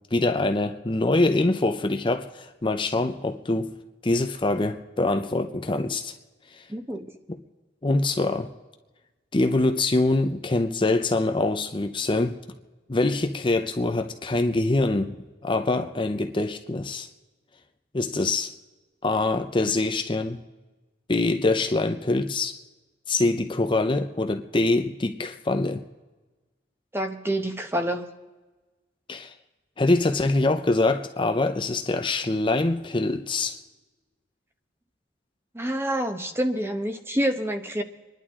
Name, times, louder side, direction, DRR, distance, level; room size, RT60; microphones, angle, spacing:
voice 1, 0.1-3.7 4.0-6.1 6.5-6.7 7.3-7.4 7.8-8.5 9.3-12.4 12.9-15.1 15.4-17.1 17.9-18.5 19.0-20.4 21.1-22.6 23.1-25.8 29.1-29.3 29.8-33.6, left 2 dB, 25° left, 7 dB, 0.7 m, -24 dB
voice 2, 6.7-7.1 26.9-28.1 35.5-37.8, right 1 dB, 15° right, 6 dB, 1.1 m, -27 dB
26.5 x 11.0 x 3.7 m, 1.2 s
head